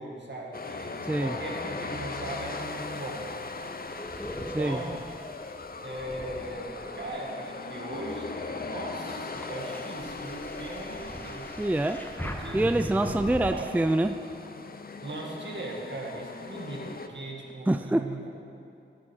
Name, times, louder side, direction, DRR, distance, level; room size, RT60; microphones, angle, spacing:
voice 1, 0.0-0.9 1.2-3.2 3.6-3.7 4.4-5.0 5.8-11.6 12.2-13.7 15.0-18.3, right 2 dB, 70° right, -2 dB, 2.1 m, -39 dB
sound 1, 0.5-17.1, left 4 dB, 50° left, 0.7 m, -39 dB
voice 2, 1.0-1.3 4.5-4.8 11.6-12.0 12.5-14.2 17.7-18.3, right 1 dB, 10° right, 8 dB, 0.4 m, -26 dB
sound 2, 3.1-7.3 7.8-13.5, equal, 10° left, 1.0 m, -41 dB
14.0 x 7.3 x 6.4 m, 2.6 s
wide cardioid pair, 75°, 19 cm